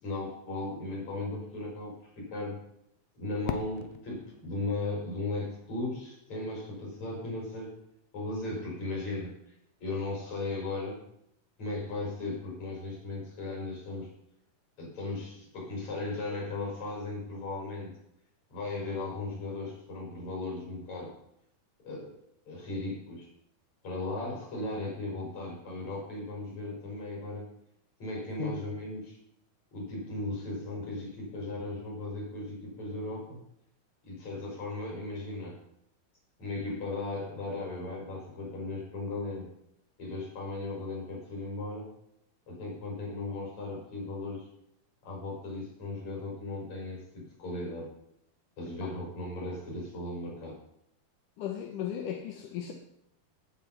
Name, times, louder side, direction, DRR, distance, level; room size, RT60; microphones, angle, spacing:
voice 1, 0.0-2.6 3.1-7.8 8.1-9.3 9.8-11.0 11.6-14.1 14.8-18.0 18.5-21.1 21.8-22.2 22.5-23.3 23.8-27.5 28.0-29.2 29.7-33.4 34.0-35.6 36.4-39.5 40.0-41.9 42.5-44.5 45.0-47.9 48.6-50.6, left 2 dB, 45° left, -3 dB, 6.6 m, -36 dB
Fireworks, 3.5-6.3, left 10 dB, 85° left, 2.8 m, -42 dB
voice 2, 51.4-52.7, left 9 dB, 65° left, 2 dB, 2.4 m, -36 dB
17.5 x 7.6 x 5.8 m, 0.76 s
omnidirectional pair, 4.5 m